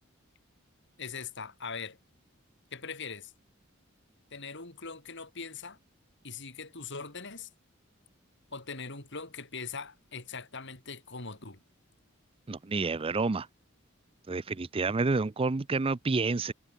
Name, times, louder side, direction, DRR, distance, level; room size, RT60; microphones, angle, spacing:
voice 1, 1.0-2.0 2.7-3.3 4.3-5.8 6.2-7.5 8.5-11.6, left 5 dB, 60° left, 6.3 m, -41 dB
voice 2, 12.5-13.5 14.3-16.5, right 3 dB, 25° right, 0.5 m, -29 dB
head